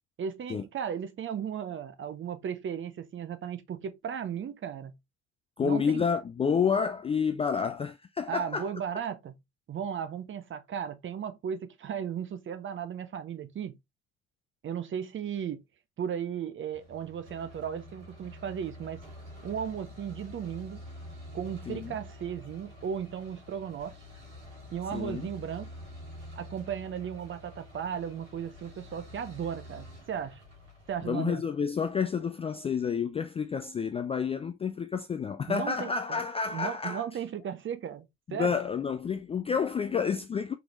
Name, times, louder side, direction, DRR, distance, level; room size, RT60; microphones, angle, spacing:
voice 1, 0.2-4.9 5.6-6.0 8.3-9.3 9.7-13.7 14.6-15.6 16.0-19.0 19.4-20.8 21.3-24.0 24.7-25.7 26.4-30.4 30.9-31.4 35.5-36.2 36.5-38.6, right 8 dB, 35° right, 0.9 m, -35 dB
voice 2, 5.6-8.7 21.7-22.0 24.9-25.3 31.0-37.0 38.3-40.6, left 6 dB, 15° left, 0.4 m, -29 dB
sound 1, 16.7-31.1, left 1 dB, 65° right, 3.0 m, -47 dB
5.9 x 3.5 x 2.4 m
figure-of-eight pair, 55°, 36 cm